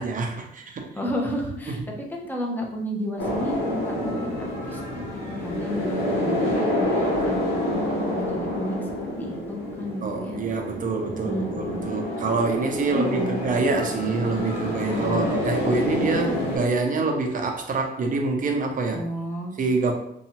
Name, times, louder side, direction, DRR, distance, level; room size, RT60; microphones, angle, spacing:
voice 1, 0.0-0.9 1.7-1.8 10.0-19.1 19.6-19.9, right 3 dB, 40° right, 3 dB, 0.6 m, -26 dB
voice 2, 0.9-1.8 2.1-7.8 8.1-8.9 9.2-10.4 11.3-11.8 12.9-13.4 14.9-15.3 16.0-16.4 18.9-19.6, equal, 10° left, -1 dB, 0.7 m, -32 dB
sound 1, 3.2-16.6, left 1 dB, 65° left, 1.3 m, -28 dB
2.7 x 2.3 x 2.9 m, 0.75 s
cardioid pair, 90°, 20 cm